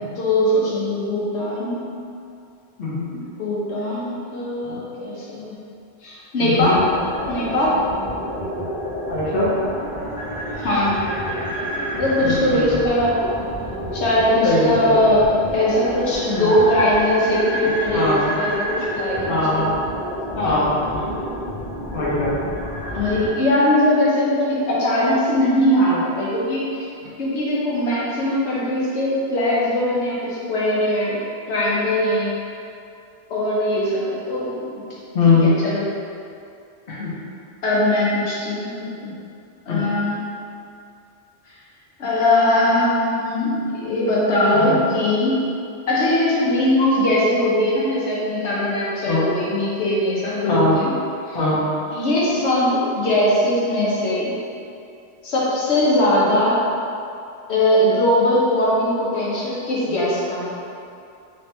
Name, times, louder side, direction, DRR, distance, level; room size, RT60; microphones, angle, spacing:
voice 1, 0.2-1.8 3.1-5.5 6.0-6.8 7.3-7.7 10.6-11.0 12.0-13.2 13.9-18.1 18.3-19.7 20.4-20.6 22.9-26.7 27.2-31.2 31.5-32.3 33.3-34.8 35.4-35.8 37.6-39.1 39.7-40.2 42.0-45.4 45.9-50.9 51.3-51.4 51.9-54.3 55.2-56.6 57.5-60.5, left 1 dB, 90° left, -6 dB, 1.1 m, -20 dB
voice 2, 6.4-6.8 9.1-9.5 12.2-12.8 14.4-14.9 16.3-16.5 17.9-18.3 19.3-19.8 20.4-21.1 21.9-22.5 35.1-35.5 36.9-37.1 39.7-39.8 44.6-44.8 49.0-49.3 50.5-50.8 51.3-51.6, left 3 dB, 60° left, -7 dB, 1.0 m, -21 dB
sound 1, 6.6-23.3, equal, 10° left, 0.9 m, -29 dB
3.3 x 2.9 x 3.2 m, 2.5 s
omnidirectional pair, 1.1 m